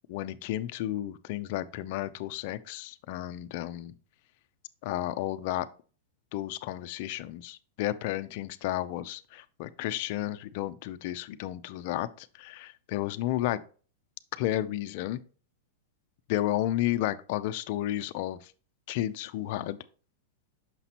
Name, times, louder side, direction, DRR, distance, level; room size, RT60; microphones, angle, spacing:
voice 1, 0.1-3.9 4.8-5.7 6.3-13.6 14.4-15.2 16.3-18.5 18.9-19.8, left 14 dB, 45° left, 0.4 m, -32 dB
6.0 x 5.7 x 2.9 m
supercardioid pair, 160°, 0 cm